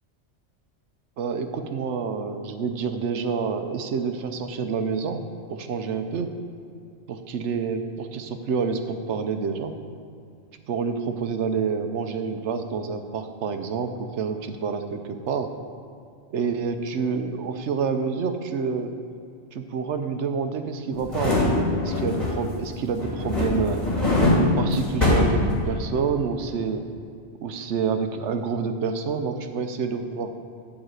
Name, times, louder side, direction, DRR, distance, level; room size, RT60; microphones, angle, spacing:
voice 1, 1.2-5.2 5.5-6.3 7.1-9.7 10.7-15.5 16.3-18.9 19.5-23.8 24.6-26.8 27.4-30.3, right 5 dB, 85° right, 7 dB, 1.0 m, -28 dB
sound 1, 20.9-22.6 23.0-26.0 26.4-26.5, left 2 dB, 30° left, 2.4 m, -23 dB
12.0 x 4.0 x 8.0 m, 2.4 s
omnidirectional pair, 1.2 m